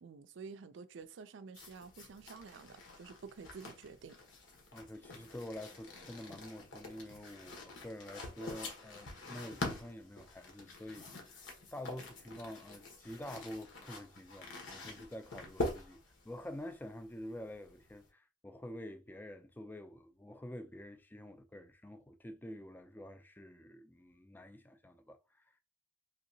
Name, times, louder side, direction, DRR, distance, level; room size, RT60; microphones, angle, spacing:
voice 1, 0.0-4.2, right 5 dB, 70° right, 0.4 m, -50 dB
sound 1, 1.5-18.1, left 2 dB, 75° left, 1.1 m, -46 dB
voice 2, 4.7-11.4 11.7-16.0 16.2-25.4, left 1 dB, 10° left, 0.4 m, -48 dB
3.4 x 2.8 x 2.7 m
head